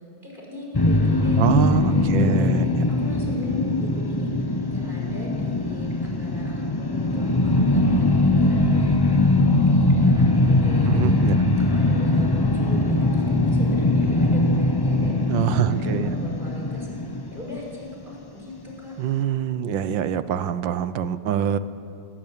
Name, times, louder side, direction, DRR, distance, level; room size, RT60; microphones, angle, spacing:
voice 1, 0.2-2.5 2.9-4.3 4.7-9.2 9.5-15.2 15.7-16.9 17.3-18.9, left 2 dB, 25° right, -2 dB, 5.7 m, -37 dB
sound 1, 0.7-17.9, left 2 dB, 25° left, 0.5 m, -21 dB
voice 2, 1.4-2.7 10.9-11.4 15.3-16.1 19.0-21.6, right 9 dB, 70° right, 13 dB, 1.5 m, -24 dB
21.5 x 17.5 x 9.0 m, 2.4 s
omnidirectional pair, 2.2 m